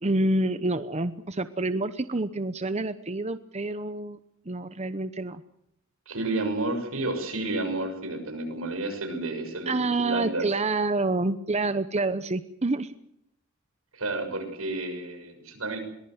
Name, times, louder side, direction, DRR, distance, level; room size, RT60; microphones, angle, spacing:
voice 1, 0.0-4.2 4.5-5.4 9.7-12.9, right 2 dB, 30° right, 12 dB, 0.9 m, -27 dB
voice 2, 6.1-9.7 10.0-10.5 13.9-15.8, right 2 dB, 85° right, 7 dB, 6.5 m, -31 dB
22.5 x 20.5 x 8.0 m, 0.75 s
head